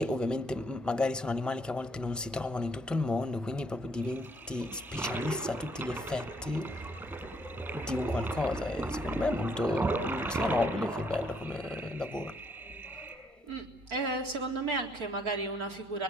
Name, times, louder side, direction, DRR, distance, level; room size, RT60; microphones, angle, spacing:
voice 1, 0.0-13.5, left 2 dB, 5° left, 1.0 m, -33 dB
Toilet flush, 4.0-13.1, right 3 dB, 15° right, 6.0 m, -36 dB
voice 2, 13.5-16.0, right 2 dB, 70° right, 3.6 m, -33 dB
24.5 x 21.0 x 9.7 m
supercardioid pair, 120°, 13 cm